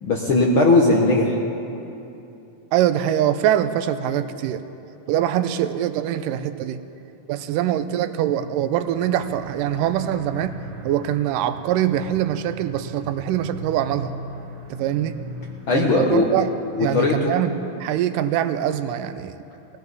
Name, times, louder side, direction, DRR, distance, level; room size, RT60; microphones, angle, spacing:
voice 1, 0.0-1.4 15.7-16.2 16.7-17.3, left 3 dB, 60° left, -2 dB, 1.4 m, -18 dB
voice 2, 2.7-4.6 5.1-6.8 7.3-10.6 10.8-14.1 14.7-15.2 15.7-16.5 16.8-17.5 17.8-19.4, right 11 dB, 85° right, 11 dB, 2.2 m, -23 dB
sound 1, 8.8-16.4, right 2 dB, 45° right, 2.1 m, -38 dB
20.0 x 15.5 x 4.1 m, 2.8 s
omnidirectional pair, 3.7 m